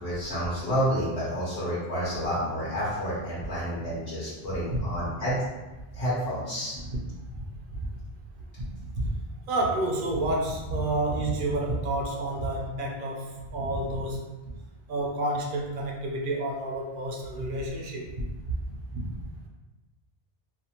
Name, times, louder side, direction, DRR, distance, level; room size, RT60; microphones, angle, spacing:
voice 1, 0.0-5.4 5.9-6.7, equal, 90° left, -10 dB, 1.2 m, -29 dB
voice 2, 9.5-14.2 14.9-18.1 18.4-19.0, right 2 dB, 60° right, -1 dB, 0.7 m, -29 dB
2.6 x 2.4 x 2.8 m, 1.1 s
omnidirectional pair, 1.0 m